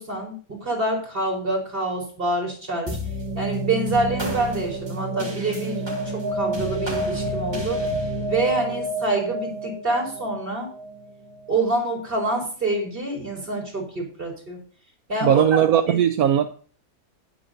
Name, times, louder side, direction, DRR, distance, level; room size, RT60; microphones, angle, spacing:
voice 1, 0.0-3.0 3.3-7.8 8.3-10.7 11.5-14.6 15.1-15.6 15.9-16.0, right 2 dB, 35° right, 0 dB, 4.8 m, -26 dB
sound 1, 2.9-11.6, right 1 dB, 20° right, 1.6 m, -29 dB
voice 2, 15.2-16.5, right 10 dB, 75° right, 7 dB, 1.3 m, -18 dB
19.5 x 8.0 x 2.8 m, 0.42 s
omnidirectional pair, 1.6 m